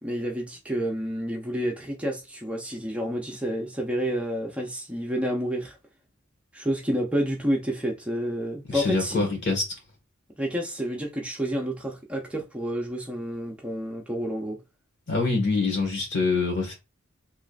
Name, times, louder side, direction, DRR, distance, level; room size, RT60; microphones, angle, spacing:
voice 1, 0.0-5.8 6.5-9.3 10.4-14.6, equal, 5° right, 0.6 m, -29 dB
voice 2, 8.7-9.6 15.1-16.7, left 3 dB, 55° left, 1.6 m, -25 dB
3.6 x 3.1 x 2.4 m
head